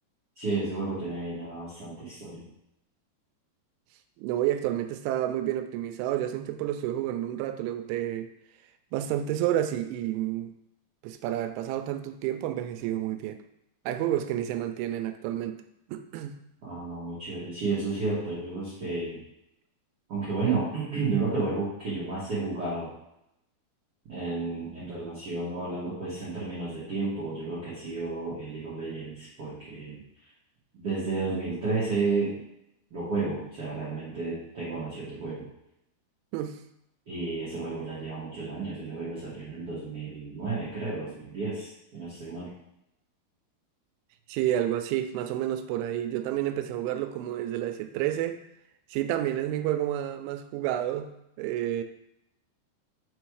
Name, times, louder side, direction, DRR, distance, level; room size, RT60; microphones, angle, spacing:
voice 1, 0.4-2.4 16.6-19.2 20.1-22.9 24.1-30.0 30.7-32.4 32.9-35.5 37.1-42.5, right 3 dB, 45° right, -12 dB, 1.9 m, -32 dB
voice 2, 4.2-8.3 8.9-10.5 11.0-13.4 13.9-15.6 15.9-16.4 36.3-36.6 44.3-48.4 48.9-51.1 51.4-51.8, right 12 dB, 90° right, 8 dB, 3.0 m, -30 dB
7.0 x 3.4 x 4.7 m, 0.82 s
omnidirectional pair, 5.3 m